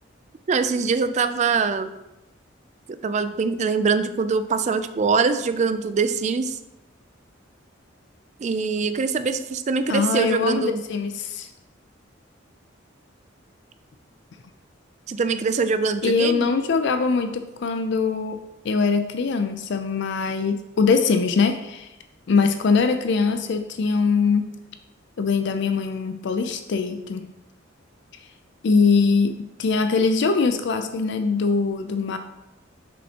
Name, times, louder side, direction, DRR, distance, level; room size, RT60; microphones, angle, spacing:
voice 1, 0.5-1.9 2.9-6.6 8.4-10.8 15.1-16.5, right 5 dB, 35° right, 11 dB, 0.3 m, -23 dB
voice 2, 9.9-11.5 16.0-18.4 18.6-21.9 22.3-24.5 25.2-27.3 28.6-32.2, left 4 dB, 60° left, 7 dB, 0.4 m, -22 dB
6.6 x 5.3 x 2.8 m, 0.93 s
head